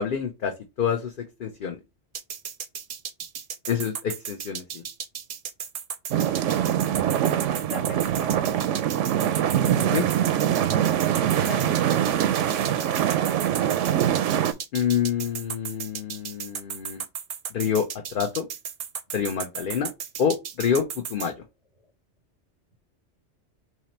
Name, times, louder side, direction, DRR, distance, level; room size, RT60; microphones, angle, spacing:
voice 1, 0.0-1.8 3.7-4.8 9.8-10.1 14.7-17.0 17.5-17.9 18.1-18.5 19.1-19.9 20.2-21.3, left 7 dB, 55° left, 0.7 m, -27 dB
sound 1, 2.1-21.3, right 7 dB, 55° right, 0.7 m, -35 dB
sound 2, 6.1-14.5, right 10 dB, 85° right, 0.9 m, -23 dB
voice 2, 7.6-8.5 11.4-12.2, left 3 dB, 35° left, 1.2 m, -40 dB
3.8 x 3.1 x 4.1 m
omnidirectional pair, 1.2 m